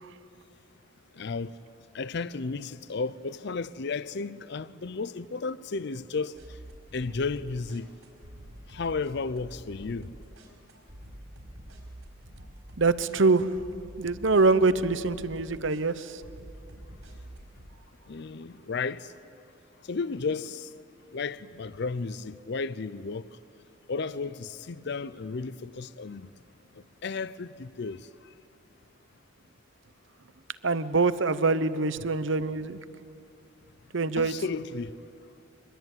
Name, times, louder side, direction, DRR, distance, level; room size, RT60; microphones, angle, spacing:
voice 1, 1.2-1.6 1.9-6.6 6.9-7.9 8.7-10.1 18.1-19.1 19.8-20.7 21.1-23.3 23.9-26.3 27.0-28.1 32.0-32.1 34.2-35.0, left 4 dB, 50° left, 0.5 m, -33 dB
sound 1, 6.4-17.7, equal, 80° right, 5.0 m, -48 dB
voice 2, 12.8-13.5 14.0-16.1 30.6-32.8 33.9-34.3, right 3 dB, 60° right, 0.8 m, -24 dB
24.0 x 21.5 x 9.1 m
head